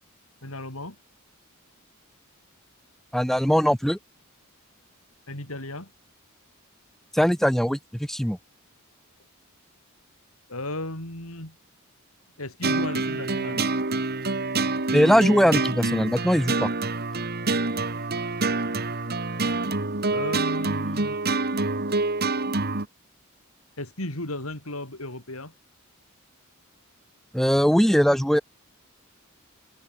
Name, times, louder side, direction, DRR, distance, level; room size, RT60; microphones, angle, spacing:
voice 1, 0.4-1.0 5.3-5.9 10.5-11.6 12.4-13.6 20.1-21.2 23.8-25.5, left 1 dB, 80° left, 8.0 m, -35 dB
voice 2, 3.1-4.0 7.1-8.4 14.9-16.7 27.3-28.4, equal, ahead, 1.5 m, -21 dB
sound 1, 12.6-22.9, right 3 dB, 45° right, 2.1 m, -26 dB
head